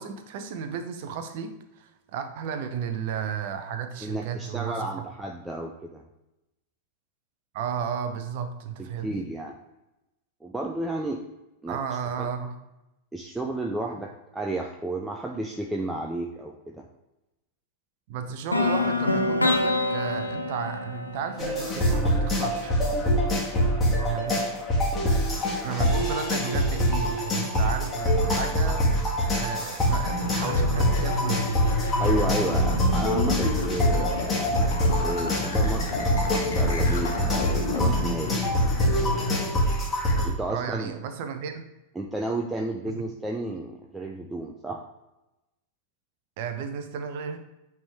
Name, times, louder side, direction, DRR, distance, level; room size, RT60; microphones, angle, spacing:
voice 1, 0.0-5.1 7.5-9.3 11.7-12.6 18.1-22.7 23.9-24.4 25.6-28.9 29.3-31.5 40.5-41.7 42.9-43.0 46.4-47.4, right 7 dB, 50° right, 8 dB, 0.7 m, -33 dB
voice 2, 4.0-6.0 9.0-9.5 10.4-11.2 11.6-11.8 12.2-12.3 13.1-16.8 32.0-34.1 35.0-35.9 36.3-38.5 40.2-40.9 42.0-44.8, right 1 dB, 10° right, 1 dB, 0.5 m, -32 dB
sound 1, 18.5-22.5, left 2 dB, 85° left, 0.6 m, -26 dB
sound 2, 21.4-40.3, equal, 20° left, 1.8 m, -25 dB
sound 3, 30.0-39.4, left 3 dB, 65° left, 1.2 m, -30 dB
8.7 x 3.5 x 3.4 m, 0.94 s
figure-of-eight pair, 90°, 0 cm